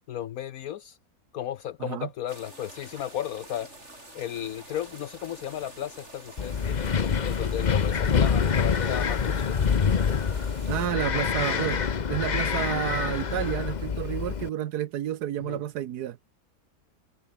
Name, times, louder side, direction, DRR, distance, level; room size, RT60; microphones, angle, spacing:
voice 1, 0.1-1.0 1.3-3.8 4.1-6.9 7.2-9.6 11.1-11.3 15.4-15.6, left 11 dB, 70° left, 1.1 m, -34 dB
sound 1, 2.3-10.9, right 1 dB, 45° right, 7.8 m, -47 dB
sound 2, 2.7-14.1, right 1 dB, 20° right, 6.9 m, -60 dB
Wind, 6.4-14.5, left 6 dB, 40° left, 0.7 m, -26 dB
voice 2, 10.7-11.8 12.1-16.2, right 11 dB, 85° right, 1.4 m, -30 dB
omnidirectional pair, 1.7 m